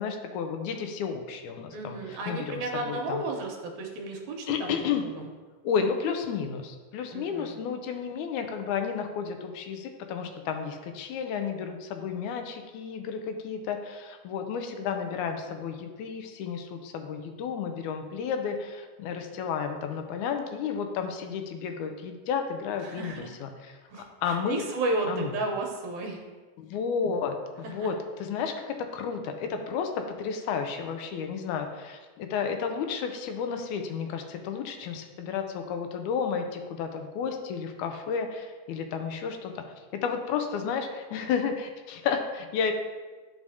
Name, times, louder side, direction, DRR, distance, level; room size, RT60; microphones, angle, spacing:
voice 1, 0.0-3.2 4.5-5.1 5.6-23.8 24.2-24.6 25.1-25.3 26.6-39.6 40.0-42.7, left 6 dB, 85° left, 6 dB, 2.0 m, -32 dB
voice 2, 1.7-5.3 7.1-7.5 22.8-23.3 23.9-26.2 27.6-27.9, right 2 dB, 75° right, 1 dB, 2.2 m, -33 dB
10.5 x 4.9 x 2.7 m, 1.4 s
omnidirectional pair, 3.5 m